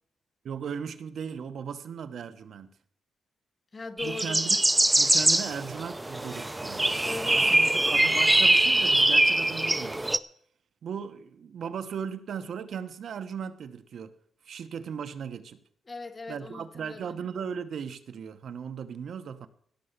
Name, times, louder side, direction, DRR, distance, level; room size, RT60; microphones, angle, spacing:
voice 1, 0.4-2.7 4.0-4.6 5.0-6.9 7.3-10.0 10.8-14.2 14.4-15.6 16.3-19.5, right 7 dB, 60° right, 1.0 m, -37 dB
voice 2, 3.7-4.4 7.0-7.8 15.9-17.2, left 3 dB, 25° left, 1.7 m, -39 dB
sound 1, 4.0-10.2, right 1 dB, 10° right, 0.6 m, -23 dB
17.0 x 6.9 x 6.7 m
wide cardioid pair, 140°, 0 cm